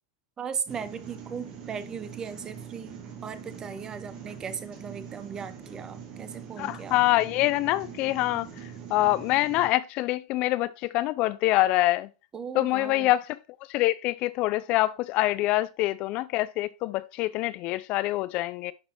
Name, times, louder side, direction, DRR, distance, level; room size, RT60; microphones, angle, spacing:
voice 1, 0.4-7.0 12.3-13.1, right 6 dB, 25° right, 0.7 m, -37 dB
sound 1, 0.7-9.7, right 7 dB, 40° right, 1.8 m, -43 dB
voice 2, 6.6-12.1 12.5-13.4 13.7-18.7, left 17 dB, 45° left, 0.4 m, -25 dB
10.5 x 4.0 x 2.9 m
hypercardioid pair, 115°, 3 cm